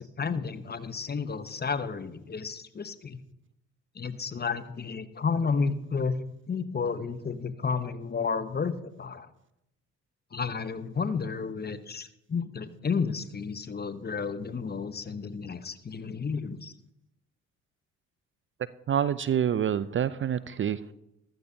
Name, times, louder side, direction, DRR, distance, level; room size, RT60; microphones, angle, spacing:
voice 1, 0.0-3.2 4.0-6.2 6.5-8.7 9.0-9.3 10.3-16.7, left 5 dB, 25° left, 12 dB, 1.0 m, -32 dB
voice 2, 18.9-20.9, right 9 dB, 35° right, 16 dB, 0.5 m, -27 dB
14.5 x 14.0 x 2.8 m, 0.84 s
hypercardioid pair, 50°, 36 cm